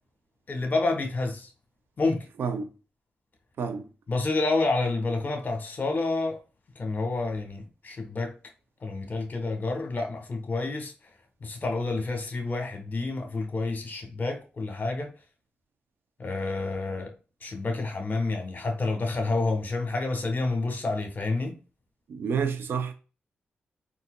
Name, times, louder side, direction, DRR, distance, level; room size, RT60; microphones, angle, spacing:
voice 1, 0.5-1.5 2.0-2.3 4.1-6.4 6.8-8.3 8.8-10.9 11.4-15.1 16.2-17.1 17.4-21.6, left 3 dB, 50° left, 1.1 m, -29 dB
voice 2, 22.1-22.9, right 6 dB, 75° right, 0.5 m, -29 dB
3.8 x 2.5 x 2.2 m
cardioid pair, 50°, 4 cm